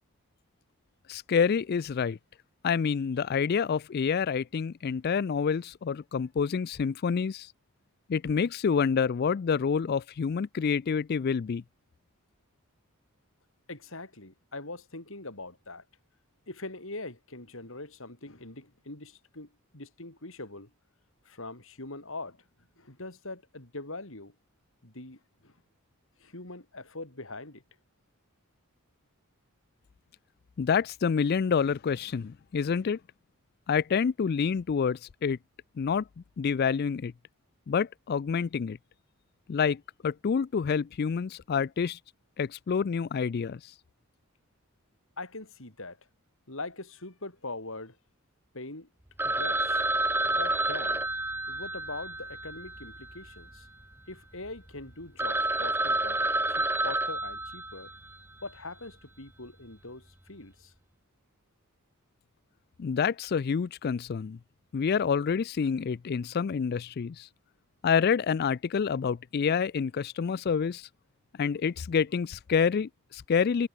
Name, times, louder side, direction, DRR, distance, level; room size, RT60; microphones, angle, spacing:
voice 1, 1.1-2.2 2.6-7.5 8.1-11.6 30.6-33.0 33.7-35.4 35.8-36.0 36.4-37.1 37.7-38.8 39.5-42.0 42.4-43.6 62.8-64.4 64.7-67.3 67.8-70.8 71.4-73.7, left 6 dB, 45° left, 0.3 m, -27 dB
voice 2, 13.7-15.8 16.5-20.7 21.2-22.4 22.8-24.3 24.8-25.5 26.2-27.6 45.2-46.0 46.5-48.0 48.5-48.9 49.2-49.8 50.3-51.0 51.5-53.7 54.1-57.9 58.4-60.7, left 2 dB, 60° left, 4.0 m, -42 dB
Telephone, 49.2-53.5 53.8-53.9 54.4-54.5 54.9-55.0 55.2-58.1, right 2 dB, 10° right, 0.6 m, -29 dB
head